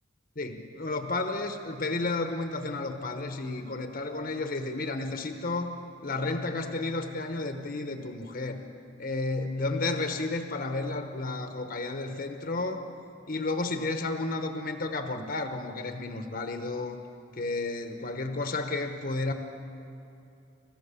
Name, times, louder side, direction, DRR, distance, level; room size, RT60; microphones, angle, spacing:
voice 1, 0.4-5.8 6.0-8.6 9.0-12.8 13.3-17.0 17.3-19.3, left 2 dB, 45° left, 6 dB, 1.1 m, -32 dB
28.0 x 15.0 x 7.0 m, 2.7 s
head